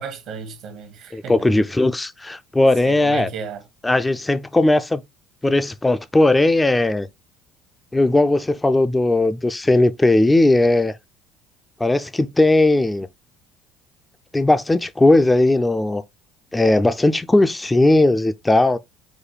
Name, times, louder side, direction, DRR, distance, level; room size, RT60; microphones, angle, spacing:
voice 1, 0.0-1.5 2.8-3.6, right 6 dB, 65° right, 1.1 m, -34 dB
voice 2, 1.1-3.3 3.8-5.0 5.4-7.1 7.9-11.0 11.8-13.1 14.3-16.0 16.5-18.8, left 2 dB, 15° left, 0.4 m, -17 dB
5.0 x 2.2 x 3.9 m
supercardioid pair, 85°, 0 cm